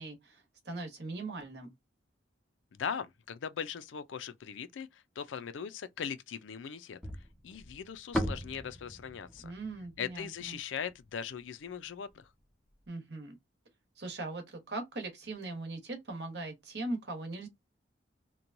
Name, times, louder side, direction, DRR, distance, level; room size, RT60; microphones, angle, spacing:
voice 1, 0.0-1.7 9.4-10.6 12.9-13.4 14.0-17.5, right 2 dB, 65° right, 1.1 m, -40 dB
voice 2, 2.7-7.0 7.4-9.5 10.0-12.3, left 7 dB, 85° left, 0.4 m, -40 dB
sound 1, 7.0-11.3, equal, 5° left, 0.4 m, -39 dB
3.0 x 2.2 x 2.5 m
head